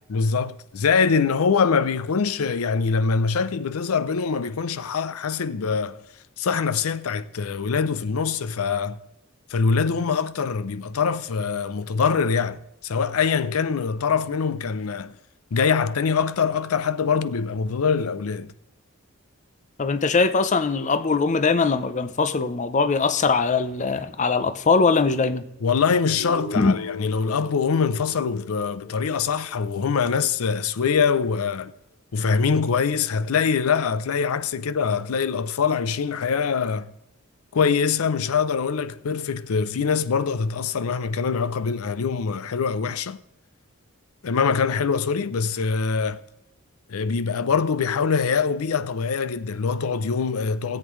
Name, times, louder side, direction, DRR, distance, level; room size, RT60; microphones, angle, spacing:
voice 1, 0.1-6.0 6.4-9.0 9.5-15.2 15.5-18.5 25.6-31.7 32.1-36.9 37.5-43.2 44.2-46.2 46.9-50.8, left 5 dB, 85° left, 0.5 m, -23 dB
voice 2, 19.8-25.4 26.6-26.7, left 4 dB, 35° left, 0.5 m, -21 dB
Guitar, 26.2-30.2, left 3 dB, 70° left, 2.7 m, -38 dB
17.5 x 8.2 x 3.1 m
head